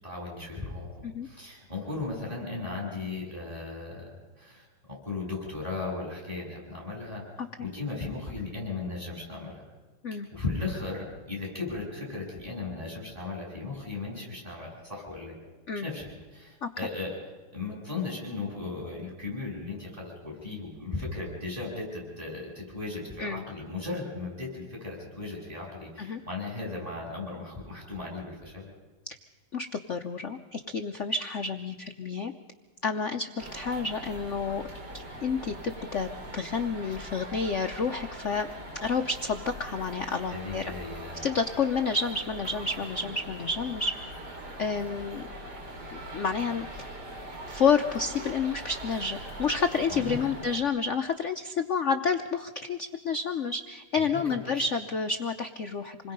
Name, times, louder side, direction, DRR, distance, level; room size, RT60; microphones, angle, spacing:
voice 1, 0.0-9.7 10.1-15.4 15.8-17.1 17.5-28.7 40.3-41.3 49.9-50.3 54.0-54.6, left 3 dB, 15° right, -3 dB, 7.6 m, -36 dB
voice 2, 29.5-32.3 32.8-34.6 34.9-38.5 38.8-40.7 41.2-43.9 44.6-45.3 45.9-46.7 47.5-56.1, left 5 dB, 85° left, 7 dB, 0.6 m, -29 dB
sound 1, 33.4-50.6, right 1 dB, 50° right, 3.4 m, -42 dB
27.5 x 21.0 x 5.3 m, 1.3 s
omnidirectional pair, 2.4 m